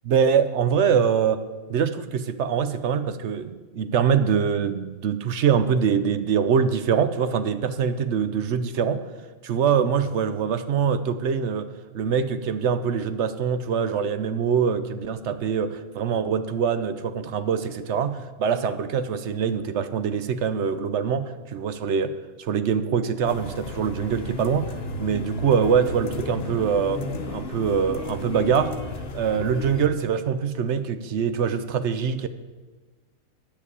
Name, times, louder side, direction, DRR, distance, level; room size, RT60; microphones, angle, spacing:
voice 1, 0.0-1.4 1.7-9.0 9.4-11.7 11.9-22.1 22.4-24.7 25.0-28.7 29.1-32.3, right 7 dB, 60° right, 11 dB, 0.9 m, -24 dB
sound 1, 23.2-29.9, left 3 dB, 50° left, 1.0 m, -34 dB
10.0 x 6.8 x 8.2 m, 1.3 s
omnidirectional pair, 1.5 m